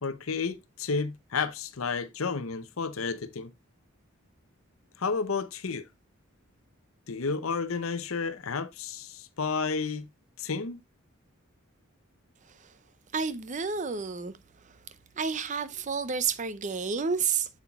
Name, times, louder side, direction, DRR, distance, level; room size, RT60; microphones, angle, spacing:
voice 1, 0.0-3.5 5.0-5.8 7.1-10.1 10.4-10.8, left 4 dB, 75° left, 0.7 m, -31 dB
voice 2, 13.1-14.3 14.6-14.8 15.2-17.5, right 5 dB, 35° right, 0.6 m, -30 dB
7.9 x 7.4 x 2.3 m
head